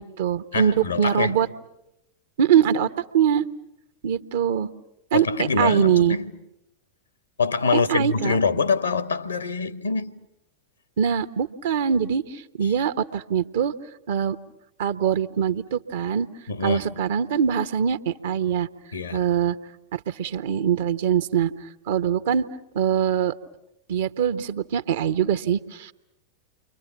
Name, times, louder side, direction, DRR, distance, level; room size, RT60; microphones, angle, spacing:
voice 1, 0.0-1.5 2.4-3.5 4.0-4.7 5.1-6.2 7.7-8.4 11.0-13.7 14.1-14.4 14.8-16.3 16.6-18.7 19.1-19.6 19.9-21.5 21.9-22.4 22.7-23.3 23.9-25.9, right 8 dB, 55° right, 1.0 m, -23 dB
voice 2, 0.5-1.4 5.1-6.3 7.4-10.1 16.5-16.8 18.9-19.3, left 4 dB, 75° left, 1.2 m, -24 dB
29.5 x 24.5 x 7.3 m
figure-of-eight pair, 90°, 0 cm